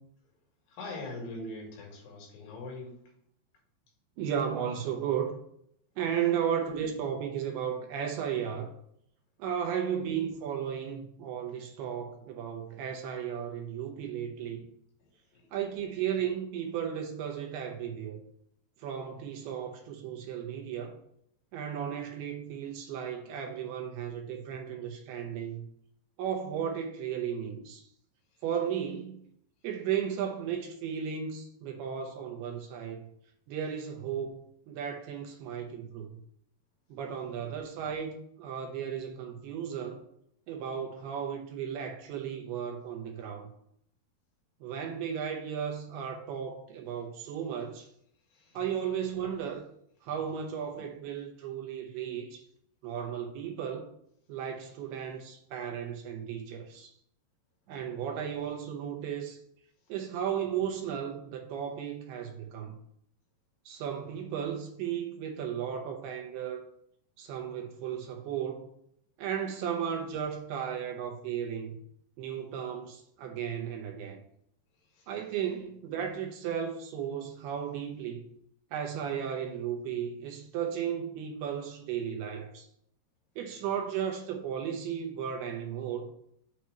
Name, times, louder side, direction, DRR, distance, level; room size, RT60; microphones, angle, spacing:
voice 1, 0.7-2.9, left 2 dB, 80° left, 4.2 m, -41 dB
voice 2, 4.2-5.4 6.0-8.7 9.4-14.7 15.5-18.2 18.8-21.0 21.5-25.7 26.2-27.9 28.4-29.2 29.6-33.1 33.5-34.4 34.7-36.2 36.9-40.0 40.5-43.5 44.6-47.9 48.5-49.7 50.0-52.4 52.8-53.9 54.3-56.9 57.7-59.4 59.9-62.8 63.7-66.7 67.2-68.7 69.2-71.8 72.2-74.2 75.1-78.3 78.7-82.7 83.4-86.1, right 8 dB, 75° right, 2.5 m, -35 dB
8.1 x 3.0 x 6.2 m
omnidirectional pair, 5.3 m